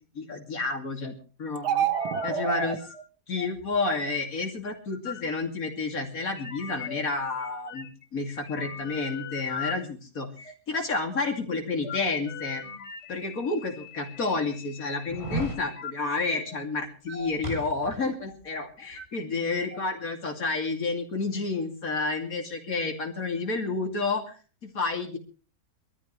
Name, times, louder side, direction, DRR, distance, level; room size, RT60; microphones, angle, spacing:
voice 1, 0.1-1.1 1.4-1.9 2.2-2.8 3.3-7.9 8.1-12.6 13.1-24.4 24.6-25.2, left 3 dB, 60° left, 3 dB, 3.1 m, -30 dB
sound 1, 1.6-2.8, right 8 dB, 85° right, 1.6 m, -27 dB
sound 2, 1.9-2.4 2.8-3.0 3.3-3.7 4.6-5.4 6.3-7.0 7.4-8.0 8.3-9.7 10.4-10.5 11.1-11.4 11.8-15.9 16.4-16.6 17.1-17.4 17.7-18.5 18.8-19.0 19.7-19.8, left 7 dB, 85° left, 2.9 m, -40 dB
sound 3, 13.1-13.2 13.9-14.0 15.1-15.6 17.4-18.1 18.4-18.5, right 1 dB, 20° right, 2.5 m, -34 dB
23.5 x 13.5 x 3.2 m, 0.36 s
omnidirectional pair, 1.7 m